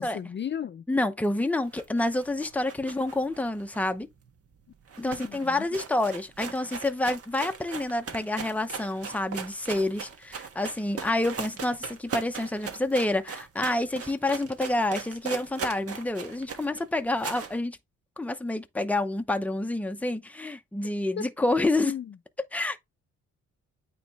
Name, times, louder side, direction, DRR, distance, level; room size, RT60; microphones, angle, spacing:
voice 1, 0.0-0.8 5.0-5.6 21.2-21.3 21.6-22.1, left 8 dB, 40° left, 0.5 m, -35 dB
voice 2, 0.9-4.1 5.0-17.8 18.2-21.9 22.5-22.8, left 2 dB, 5° left, 0.7 m, -28 dB
sound 1, 1.7-4.3 4.6-4.7 4.9-17.6, right 6 dB, 50° right, 1.4 m, -39 dB
8.8 x 3.1 x 3.5 m
cardioid pair, 90°, 30 cm